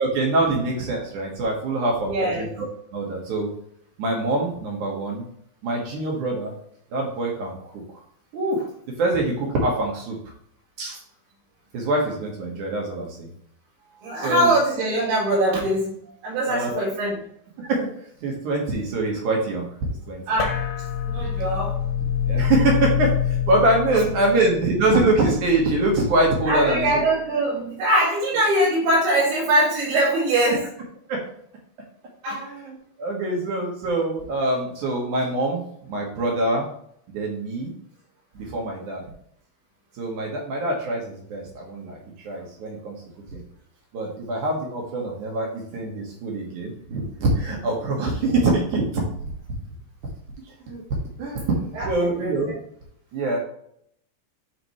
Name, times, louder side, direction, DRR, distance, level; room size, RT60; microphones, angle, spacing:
voice 1, 0.0-2.1 2.4-2.7 2.9-3.5 4.0-5.2 5.6-6.5 6.9-8.0 8.3-8.7 9.0-10.2 10.8-11.0 11.7-13.3 14.2-14.5 16.4-16.8 17.6-19.7 20.1-20.2 22.3-27.0 31.1-31.2 32.3-36.6 37.1-37.7 38.3-39.0 39.9-43.0 43.3-43.4 43.9-49.0 49.5-49.6 50.5-50.8 51.2-52.5 53.1-53.4, right 2 dB, 60° right, -1 dB, 2.1 m, -24 dB
voice 2, 2.1-2.4 14.0-15.9 16.2-17.2 20.3-20.6 21.0-21.7 24.3-24.4 26.5-30.7 32.2-32.5 38.4-38.5 51.8-51.9 52.2-52.4, right 1 dB, 80° right, -7 dB, 5.5 m, -22 dB
sound 1, 20.4-27.1, left 8 dB, 70° left, 2.9 m, -27 dB
9.9 x 4.3 x 3.2 m, 0.68 s
omnidirectional pair, 5.4 m